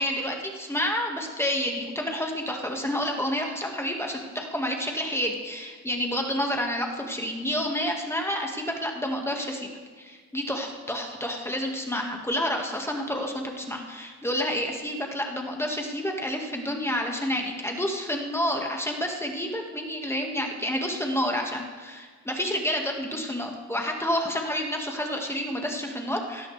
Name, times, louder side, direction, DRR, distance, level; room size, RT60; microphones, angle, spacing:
voice 1, 0.0-9.7 10.0-26.5, equal, 10° left, 1 dB, 1.5 m, -29 dB
16.5 x 13.0 x 3.2 m, 1.6 s
cardioid pair, 90°, 30 cm